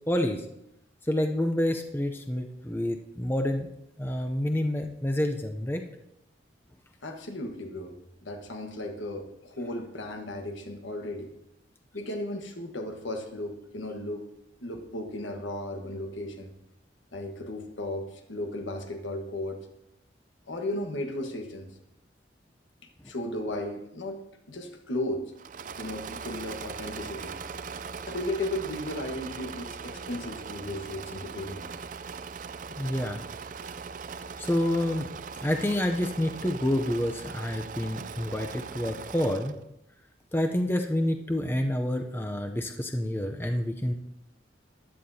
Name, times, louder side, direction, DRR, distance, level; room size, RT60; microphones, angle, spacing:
voice 1, 0.1-0.4 1.1-3.7 4.0-5.8 32.8-33.2 34.4-35.1 35.4-39.6 40.3-43.9, left 1 dB, 10° left, 4 dB, 0.6 m, -28 dB
voice 2, 7.0-7.9 8.2-11.3 11.9-14.3 14.6-16.5 17.1-19.6 20.5-21.7 23.0-24.2 24.5-25.3 25.8-27.4 28.0-31.7, left 1 dB, 85° left, 5 dB, 1.4 m, -35 dB
Engine / Mechanisms, 25.4-39.6, right 5 dB, 45° right, 0.4 m, -40 dB
15.0 x 10.5 x 2.8 m, 0.84 s
head